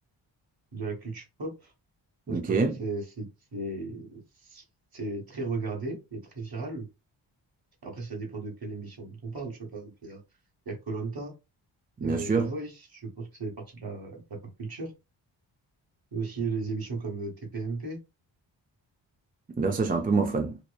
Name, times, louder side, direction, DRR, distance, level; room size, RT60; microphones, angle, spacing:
voice 1, 0.7-1.7 2.3-4.6 4.9-6.9 7.8-10.2 10.6-11.3 12.0-14.9 16.1-18.0, right 3 dB, 50° right, 1.2 m, -35 dB
voice 2, 2.3-2.8 12.0-12.5 19.6-20.6, right 4 dB, 20° right, 0.4 m, -26 dB
2.9 x 2.1 x 2.2 m
cardioid pair, 45°, 48 cm